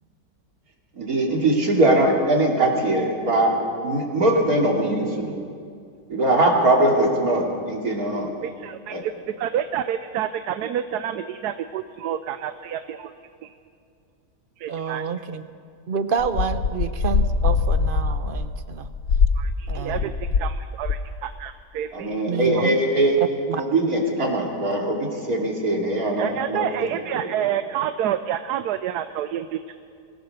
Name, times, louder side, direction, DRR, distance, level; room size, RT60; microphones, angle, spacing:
voice 1, 1.0-3.5 3.8-5.3 6.1-8.3 8.9-9.0 21.9-23.2 23.6-26.9 27.2-27.3, right 1 dB, 65° right, -1 dB, 3.3 m, -21 dB
voice 2, 8.4-9.1 9.4-13.1 13.4-13.5 14.6-15.0 19.4-22.7 26.2-29.7, right 10 dB, 90° right, 10 dB, 1.2 m, -29 dB
voice 3, 14.7-15.5 15.9-18.9 19.7-20.1 22.3-22.7 23.5-23.6, right 6 dB, 45° right, 10 dB, 0.8 m, -28 dB
sound 1, 16.2-20.6 20.8-21.2, left 5 dB, 65° left, 1.3 m, -23 dB
24.5 x 16.5 x 6.7 m, 2.3 s
omnidirectional pair, 1.6 m